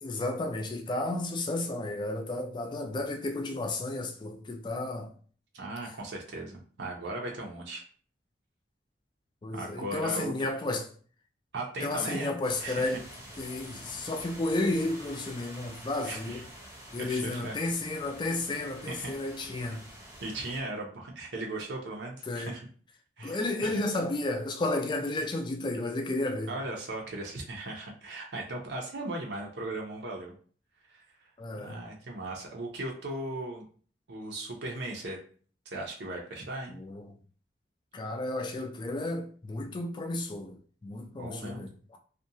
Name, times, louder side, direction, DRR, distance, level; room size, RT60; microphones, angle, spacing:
voice 1, 0.0-5.1 9.4-10.9 11.8-13.0 13.4-16.4 16.9-19.9 22.3-22.5 23.2-26.5 31.4-31.8 36.7-37.1 37.9-42.0, left 2 dB, 25° left, 0.4 m, -32 dB
voice 2, 5.5-7.8 9.5-10.5 11.5-12.9 16.0-16.4 17.0-17.5 18.9-19.1 20.2-22.6 23.2-23.8 26.5-30.3 30.9-31.0 31.6-33.6 34.1-35.2 35.7-36.8 41.2-41.6, right 2 dB, 75° right, 0.6 m, -37 dB
sound 1, 12.4-20.6, equal, 15° right, 0.7 m, -48 dB
2.5 x 2.2 x 2.7 m
head